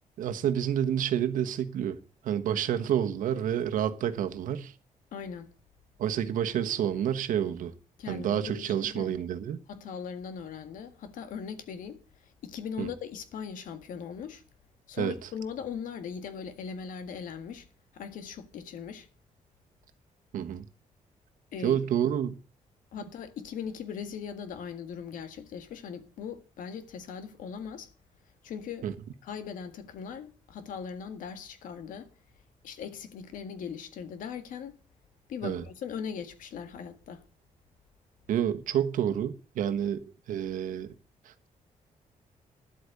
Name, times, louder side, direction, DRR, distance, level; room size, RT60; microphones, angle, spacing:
voice 1, 0.2-2.0 2.2-4.7 6.0-7.7 8.1-9.6 12.8-12.9 15.0-15.1 20.3-20.7 21.6-22.3 28.8-28.9 35.4-35.6 38.3-40.9 41.2-41.5, right 9 dB, 85° right, 1.3 m, -29 dB
voice 2, 5.1-5.5 8.0-9.1 9.7-14.4 14.9-17.6 17.9-19.1 21.5-21.8 22.9-27.9 28.4-28.8 29.2-32.1 32.6-34.7 35.3-37.2, left 7 dB, 90° left, 1.7 m, -39 dB
11.0 x 8.4 x 6.7 m
wide cardioid pair, 180°, 13 cm